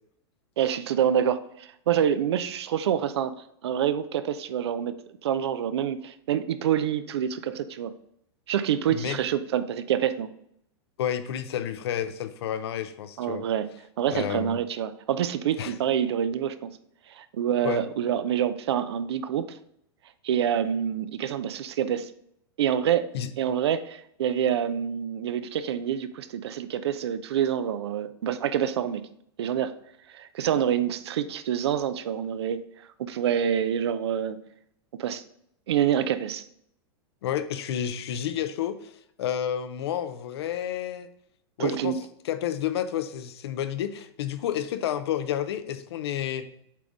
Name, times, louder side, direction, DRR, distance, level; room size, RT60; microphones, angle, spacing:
voice 1, 0.6-3.3 3.6-4.9 5.2-7.9 8.5-10.3 13.2-13.7 14.0-16.7 17.1-19.6 20.2-22.1 22.6-23.1 23.4-29.1 29.4-29.7 30.1-32.6 33.0-34.4 34.9-35.2 35.7-36.4 41.6-42.0, right 9 dB, 75° right, 12 dB, 0.6 m, -27 dB
voice 2, 11.0-13.5 14.1-14.6 15.6-15.7 17.6-17.8 23.1-23.3 37.2-38.9 39.2-41.1 41.6-42.0 42.2-46.5, left 10 dB, 70° left, 11 dB, 0.7 m, -30 dB
7.5 x 3.6 x 3.9 m, 0.72 s
hypercardioid pair, 115°, 14 cm